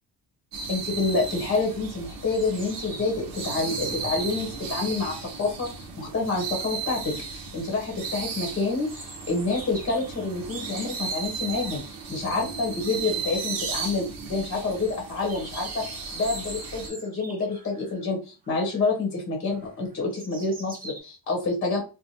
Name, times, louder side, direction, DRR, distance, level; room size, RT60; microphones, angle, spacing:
sound 1, 0.5-16.9, right 5 dB, 50° right, 0.8 m, -35 dB
voice 1, 0.7-11.8 12.1-18.2 18.5-21.8, left 3 dB, 30° left, -1 dB, 1.0 m, -28 dB
sound 2, 2.3-4.5 8.9-11.6 13.2-13.3 13.6-13.7 14.1-14.2 14.8-18.0 18.4-19.0 19.5-21.0, right 2 dB, 20° right, 0.8 m, -43 dB
3.0 x 2.1 x 2.7 m, 0.32 s
cardioid pair, 120°, 42 cm